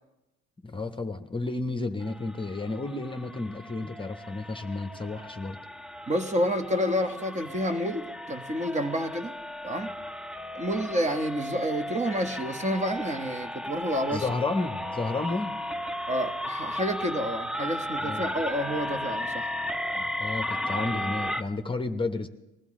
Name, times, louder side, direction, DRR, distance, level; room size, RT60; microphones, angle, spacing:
voice 1, 0.6-5.6 14.1-15.6 18.0-18.3 19.9-22.3, left 3 dB, 15° left, 6 dB, 0.9 m, -32 dB
sound 1, 2.0-21.4, left 1 dB, 5° right, 0.6 m, -35 dB
voice 2, 6.1-9.3 9.6-9.9 10.5-14.3 16.1-19.5, equal, 20° right, 7 dB, 1.1 m, -29 dB
20.5 x 14.5 x 3.7 m, 0.96 s
supercardioid pair, 75°, 31 cm